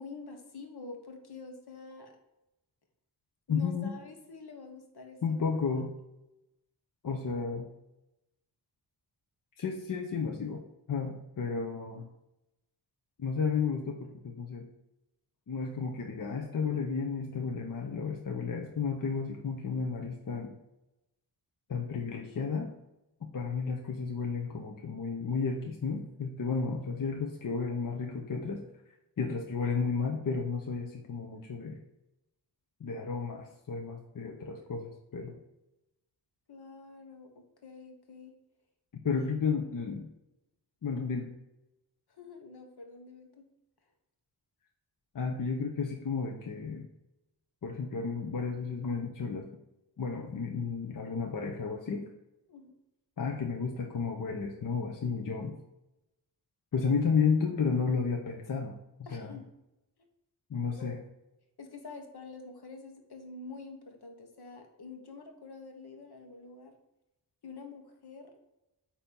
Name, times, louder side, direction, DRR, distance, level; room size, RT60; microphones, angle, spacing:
voice 1, 0.0-2.1 3.5-5.6 36.5-38.3 39.2-39.3 41.0-41.1 42.1-43.4 52.5-52.7 59.1-59.5 60.8-60.9 61.6-66.8 67.4-68.3, left 3 dB, 70° left, 4 dB, 1.3 m, -47 dB
voice 2, 3.5-3.9 5.2-5.9 7.0-7.7 9.6-10.6 10.9-12.1 13.2-14.7 15.5-20.5 21.7-22.7 23.3-28.6 29.2-31.8 32.8-35.4 39.0-40.1 40.8-41.3 45.1-46.9 47.6-49.5 50.0-52.1 53.2-55.6 56.7-58.8 59.1-59.4 60.5-61.0, left 5 dB, 50° left, 1 dB, 0.9 m, -32 dB
8.5 x 3.0 x 5.3 m, 0.92 s
cardioid pair, 70°, 41 cm